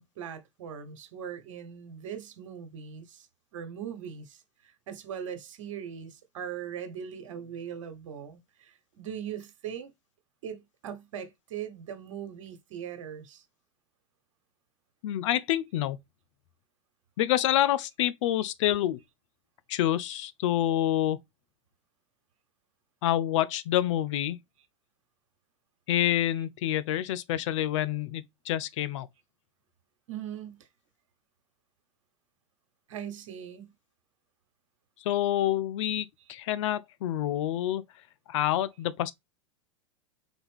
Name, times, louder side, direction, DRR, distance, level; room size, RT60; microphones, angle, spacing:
voice 1, 0.0-3.3 3.5-9.9 10.4-13.4 30.1-30.7 32.9-33.7, right 8 dB, 70° right, 1.1 m, -40 dB
voice 2, 15.0-16.0 17.2-19.0 19.7-21.2 23.0-24.4 25.9-29.1 35.0-37.8 38.3-39.1, left 12 dB, 65° left, 0.5 m, -27 dB
4.1 x 3.4 x 3.4 m
hypercardioid pair, 100°, 17 cm